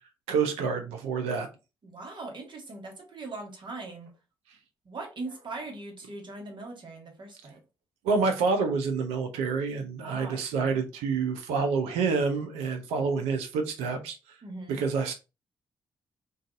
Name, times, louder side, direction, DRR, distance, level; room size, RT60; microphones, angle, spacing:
voice 1, 0.3-1.5 8.0-14.4 14.7-15.1, right 5 dB, 85° right, 0.6 m, -28 dB
voice 2, 1.8-4.1 4.8-7.6 10.0-10.8 14.4-14.8, right 2 dB, 50° right, 1.2 m, -40 dB
2.6 x 2.4 x 3.7 m
hypercardioid pair, 45°, 10 cm